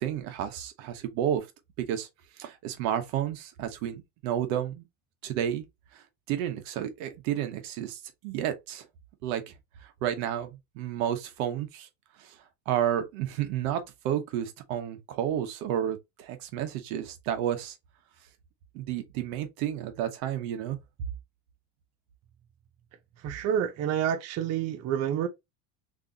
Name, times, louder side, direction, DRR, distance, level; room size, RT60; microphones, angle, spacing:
voice 1, 0.0-1.5 1.8-2.1 2.4-4.8 5.2-5.6 5.9-8.8 9.2-9.5 10.0-11.9 12.2-12.4 12.7-17.8 18.7-20.8, right 10 dB, 85° right, 1.2 m, -31 dB
voice 2, 23.2-25.3, right 9 dB, 40° right, 0.6 m, -28 dB
3.8 x 3.1 x 2.8 m
cardioid pair, 150°, 41 cm